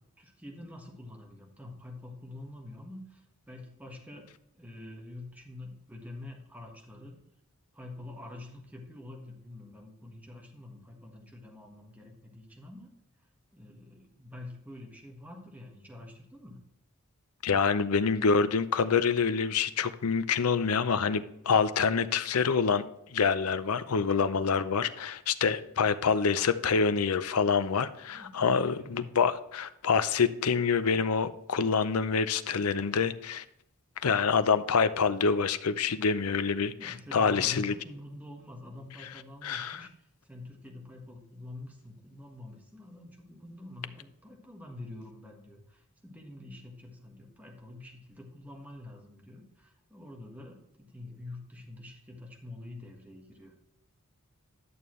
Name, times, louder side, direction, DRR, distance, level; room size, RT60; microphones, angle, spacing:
voice 1, 0.2-4.3 4.5-7.2 7.7-12.9 13.5-16.6 28.1-29.2 36.8-53.5, left 2 dB, 5° right, 0 dB, 1.5 m, -46 dB
voice 2, 17.4-22.8 23.1-33.4 34.0-37.7 39.4-39.8, left 5 dB, 85° left, 13 dB, 0.6 m, -26 dB
11.0 x 6.9 x 3.2 m, 0.80 s
head